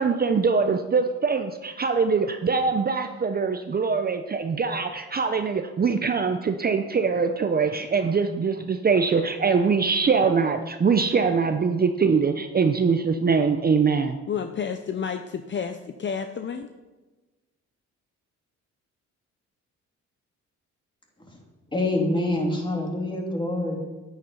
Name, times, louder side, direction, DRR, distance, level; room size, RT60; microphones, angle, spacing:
voice 1, 0.0-14.2, right 5 dB, 30° right, 8 dB, 0.7 m, -23 dB
voice 2, 14.3-16.7, left 7 dB, 40° left, 8 dB, 0.7 m, -30 dB
voice 3, 21.7-23.8, left 1 dB, 15° left, 0 dB, 2.9 m, -25 dB
9.8 x 9.3 x 5.4 m, 1.2 s
cardioid pair, 90°, 30 cm